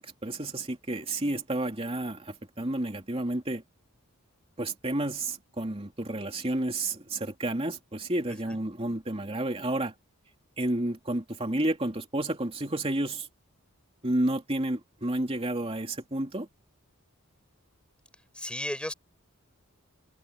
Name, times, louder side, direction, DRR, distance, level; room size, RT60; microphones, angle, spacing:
voice 1, 0.0-3.6 4.6-9.9 10.6-13.3 14.0-16.5, right 1 dB, 25° right, 2.8 m, -31 dB
voice 2, 18.3-18.9, left 1 dB, 5° left, 6.1 m, -34 dB
head